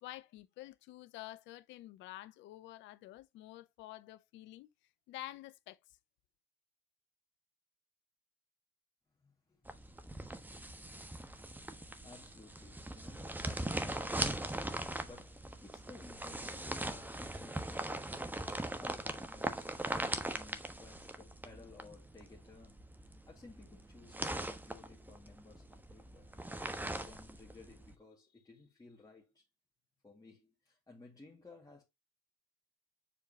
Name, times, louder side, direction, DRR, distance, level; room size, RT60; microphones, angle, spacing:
voice 1, 0.0-4.7 5.1-5.8, left 16 dB, 65° left, 0.6 m, -49 dB
voice 2, 9.2-10.0 11.6-22.9 23.3-26.3 27.0-29.4 30.0-31.8, left 3 dB, 15° left, 2.1 m, -57 dB
sound 1, 9.7-27.9, right 1 dB, 10° right, 1.2 m, -41 dB
7.1 x 4.6 x 2.9 m
hypercardioid pair, 50°, 20 cm